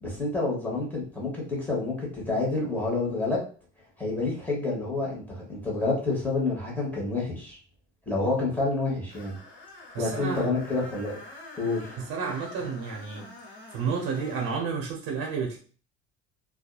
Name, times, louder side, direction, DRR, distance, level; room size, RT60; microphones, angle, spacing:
voice 1, 0.0-3.4 4.0-7.6 8.1-9.3 10.0-11.2 11.6-11.9, left 3 dB, 5° left, -4 dB, 1.0 m, -28 dB
Screech, 9.1-14.6, left 2 dB, 45° left, 0.8 m, -46 dB
voice 2, 9.9-10.6 12.0-13.3 13.7-15.6, right 5 dB, 55° right, 0 dB, 0.7 m, -31 dB
2.6 x 2.3 x 2.3 m, 0.40 s
cardioid pair, 130°, 29 cm